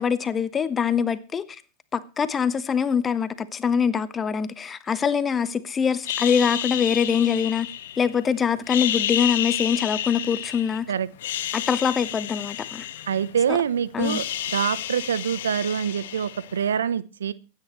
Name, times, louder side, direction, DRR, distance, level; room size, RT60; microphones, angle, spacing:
voice 1, 0.0-1.4 1.9-7.7 8.0-10.9 11.5-12.9 13.5-13.6 13.9-14.2, left 7 dB, 25° left, 1.2 m, -24 dB
sound 1, 6.0-8.2 8.6-10.8 11.1-13.5 13.8-16.7, left 11 dB, 70° left, 1.4 m, -30 dB
voice 2, 13.1-14.2 14.5-17.3, right 8 dB, 80° right, 0.8 m, -25 dB
24.0 x 9.6 x 3.2 m
hypercardioid pair, 90°, 0 cm